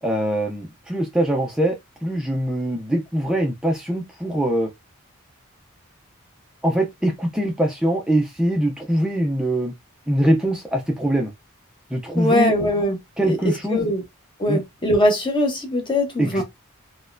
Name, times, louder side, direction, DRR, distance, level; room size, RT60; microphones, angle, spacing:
voice 1, 0.0-4.7 6.6-9.7 10.1-11.3 11.9-12.5 13.2-13.9 14.5-14.6 16.2-16.4, right 1 dB, 5° right, 0.4 m, -23 dB
voice 2, 12.1-13.0 13.2-14.0 14.4-16.4, left 1 dB, 20° left, 0.8 m, -21 dB
4.1 x 2.2 x 2.5 m
head